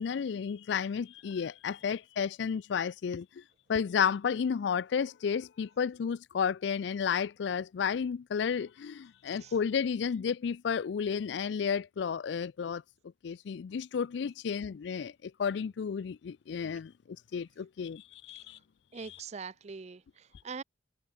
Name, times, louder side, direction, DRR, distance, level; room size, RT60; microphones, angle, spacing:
voice 1, 0.0-3.4 3.7-12.8 13.2-18.6 19.1-19.2, left 6 dB, 65° left, 0.3 m, -32 dB
voice 2, 18.9-20.6, right 5 dB, 35° right, 0.4 m, -42 dB
head